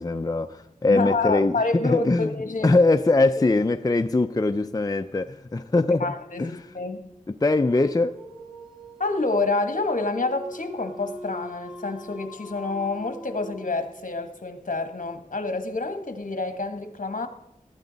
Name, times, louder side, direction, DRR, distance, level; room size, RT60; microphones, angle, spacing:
voice 1, 0.0-2.4 2.6-6.1 6.4-6.6 7.4-8.2, left 2 dB, 25° left, 0.5 m, -22 dB
voice 2, 0.9-2.8 5.8-7.1 9.0-17.3, left 3 dB, 60° left, 1.5 m, -28 dB
Dog, 7.6-14.0, equal, 5° right, 2.1 m, -42 dB
20.5 x 14.0 x 4.0 m
wide cardioid pair, 65°, 15 cm